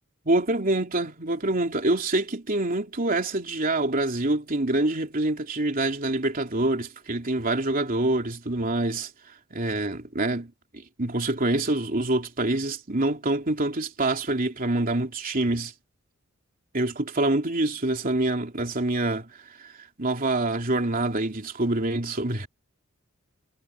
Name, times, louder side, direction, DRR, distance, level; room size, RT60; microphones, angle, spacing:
voice 1, 0.2-9.1 9.5-10.5 11.0-15.7 16.7-19.3 19.6-19.7 20.0-22.5, right 2 dB, 45° right, 3.1 m, -26 dB
head